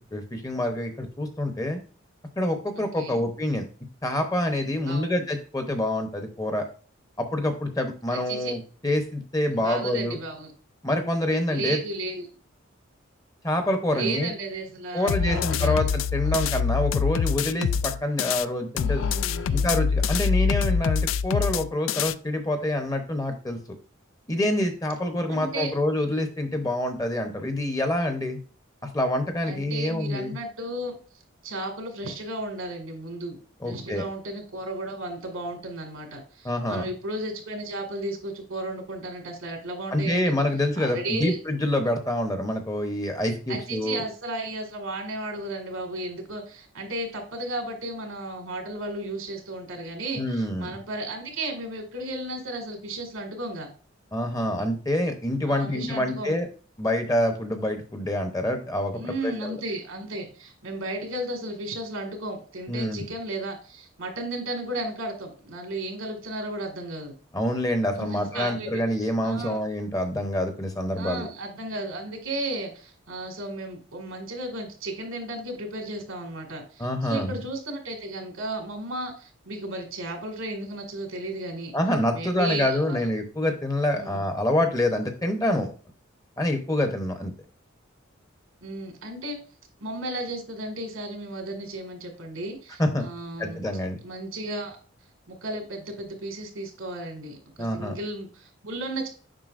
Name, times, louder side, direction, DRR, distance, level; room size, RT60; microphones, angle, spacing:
voice 1, 0.1-1.8 2.4-3.7 4.0-6.6 7.2-10.2 10.8-11.8 13.4-14.3 14.9-19.0 19.5-23.8 24.3-28.4 28.9-30.4 33.6-34.0 36.4-36.9 39.9-44.0 50.2-50.7 54.1-56.5 56.8-59.6 62.7-63.0 67.3-71.3 76.8-77.4 81.7-85.7 86.4-87.3 92.8-93.0 93.4-94.0 97.6-97.9, left 1 dB, 15° left, 6 dB, 0.8 m, -26 dB
voice 2, 2.8-3.2 4.9-5.2 8.1-8.5 9.5-10.5 11.5-12.3 13.9-15.9 16.2-16.4 18.8-19.7 25.3-25.7 29.5-31.0 31.4-33.4 33.6-40.3 40.8-41.4 43.5-53.7 55.5-56.4 58.9-67.1 68.0-69.6 71.0-81.7 82.1-83.1 84.0-84.2 88.6-89.4 89.8-93.7 94.0-94.8 95.3-99.1, right 1 dB, 85° right, 4 dB, 2.0 m, -34 dB
sound 1, 15.1-18.5 18.8-22.1, left 6 dB, 70° left, 0.3 m, -25 dB
7.6 x 5.5 x 2.5 m, 0.39 s
head